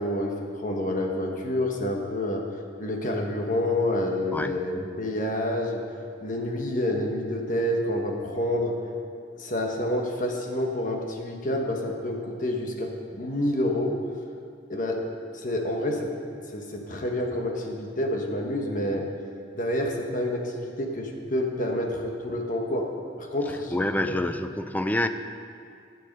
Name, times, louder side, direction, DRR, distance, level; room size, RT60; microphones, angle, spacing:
voice 1, 0.0-2.4 2.8-5.8 6.2-8.7 9.4-13.9 14.7-15.0 15.3-16.1 16.5-19.0 19.5-22.9 23.2-24.2, left 1 dB, 45° left, 1 dB, 1.3 m, -28 dB
voice 2, 23.7-25.1, left 1 dB, 10° left, 9 dB, 0.4 m, -27 dB
12.5 x 7.8 x 5.4 m, 2.4 s
head